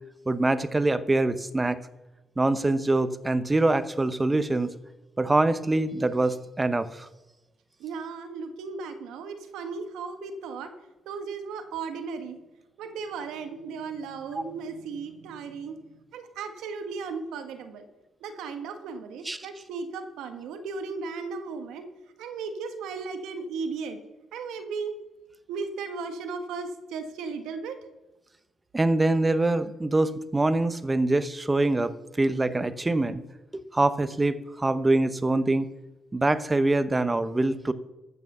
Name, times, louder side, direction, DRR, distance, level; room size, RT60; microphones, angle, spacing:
voice 1, 0.3-1.8 2.4-4.7 5.2-7.1 14.3-14.4 19.2-19.5 28.7-31.9 32.2-33.2 33.5-35.7 36.1-37.7, right 2 dB, 20° right, 13 dB, 0.9 m, -24 dB
voice 2, 7.8-10.7 11.0-12.4 12.8-15.8 16.1-17.8 18.2-21.8 22.2-24.0 24.3-25.0 25.5-27.8, right 4 dB, 90° right, 7 dB, 1.5 m, -36 dB
14.0 x 6.1 x 6.8 m, 1.0 s
cardioid pair, 80°, 0 cm